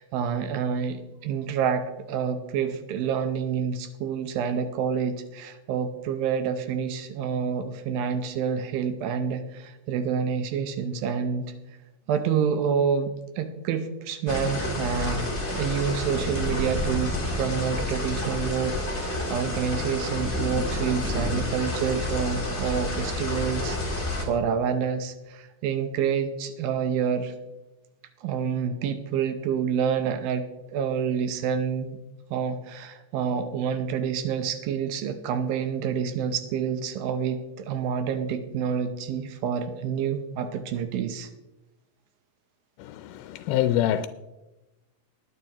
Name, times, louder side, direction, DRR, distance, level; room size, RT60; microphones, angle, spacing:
voice 1, 0.0-11.5 12.1-27.3 28.2-32.0 32.3-41.3, right 7 dB, 80° right, 2.5 m, -28 dB
sound 1, 14.3-24.3, left 1 dB, 20° left, 1.8 m, -29 dB
voice 2, 42.8-44.1, left 12 dB, 85° left, 2.4 m, -25 dB
20.0 x 9.4 x 2.9 m
omnidirectional pair, 4.2 m